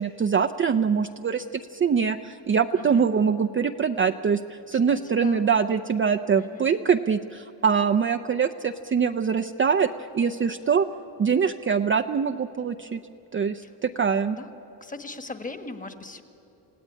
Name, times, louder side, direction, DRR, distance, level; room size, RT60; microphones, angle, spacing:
voice 1, 0.0-9.9 10.1-10.9 11.2-13.0 13.3-14.4, right 6 dB, 30° right, 6 dB, 0.5 m, -23 dB
voice 2, 2.7-3.1 4.7-5.5 6.4-6.8 13.6-13.7 14.3-14.5 14.8-16.2, left 3 dB, 20° left, 9 dB, 1.4 m, -39 dB
28.0 x 16.5 x 9.9 m, 2.9 s
cardioid pair, 135°, 44 cm